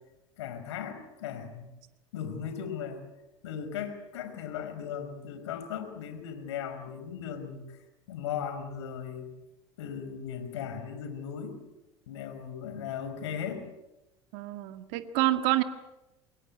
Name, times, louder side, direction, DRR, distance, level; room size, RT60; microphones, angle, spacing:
voice 1, 0.4-1.7 2.1-3.1 3.4-7.8 8.1-9.3 9.8-11.6 12.1-13.7, left 8 dB, 75° left, 8 dB, 5.2 m, -37 dB
voice 2, 14.3-15.6, right 16 dB, 65° right, 9 dB, 2.0 m, -27 dB
28.0 x 22.5 x 8.8 m, 0.98 s
hypercardioid pair, 75°, 15 cm